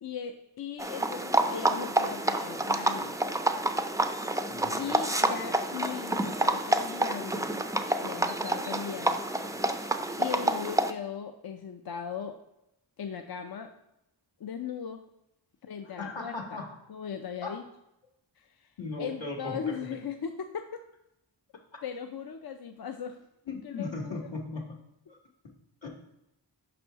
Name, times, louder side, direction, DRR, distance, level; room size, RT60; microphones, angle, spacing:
voice 1, 0.0-3.1 4.8-7.4 8.0-9.2 10.2-12.4 13.0-13.7 14.4-15.0 15.6-16.4 16.9-17.6 18.4-20.6 21.8-23.2 23.6-24.2, left 7 dB, 55° left, 6 dB, 0.5 m, -38 dB
sound 1, 0.8-10.9, right 1 dB, 10° right, 0.3 m, -28 dB
voice 2, 4.5-4.8 15.8-16.7 17.4-17.6 18.8-19.9 23.5-25.2 25.8-25.9, left 3 dB, 75° left, 0 dB, 1.4 m, -38 dB
5.4 x 4.2 x 5.6 m, 0.87 s
wide cardioid pair, 75°, 45 cm